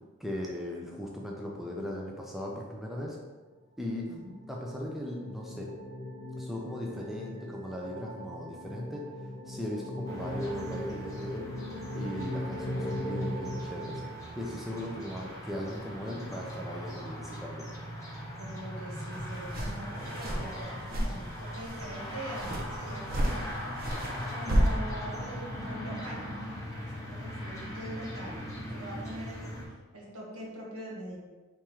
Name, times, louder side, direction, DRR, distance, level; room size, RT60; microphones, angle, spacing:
voice 1, 0.2-3.2 3.8-4.1 4.5-5.7 6.4-9.0 9.5-14.0 14.4-17.7, left 1 dB, ahead, -2 dB, 0.4 m, -38 dB
sound 1, 4.1-14.8, left 1 dB, 50° left, 0.7 m, -39 dB
sound 2, 10.1-29.6, equal, 15° left, 0.9 m, -40 dB
voice 2, 18.4-23.5 24.3-26.3 26.8-29.5 29.9-31.2, equal, 80° right, -3 dB, 1.2 m, -42 dB
sound 3, 19.1-25.7, right 1 dB, 45° right, 0.6 m, -33 dB
4.6 x 3.5 x 2.9 m, 1.3 s
head